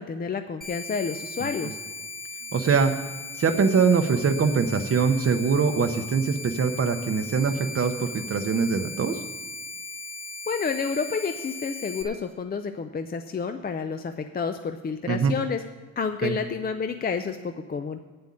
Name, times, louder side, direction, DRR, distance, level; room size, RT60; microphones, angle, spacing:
voice 1, 0.0-1.8 10.5-15.6 16.0-18.0, left 5 dB, 30° left, 7 dB, 0.5 m, -30 dB
sound 1, 0.6-12.0, left 3 dB, ahead, 1.1 m, -38 dB
voice 2, 1.4-1.7 2.5-2.9 3.4-9.2 15.1-15.4 16.2-16.4, right 5 dB, 50° right, 7 dB, 0.8 m, -23 dB
8.8 x 7.8 x 8.4 m, 1.3 s
wide cardioid pair, 180°, 30 cm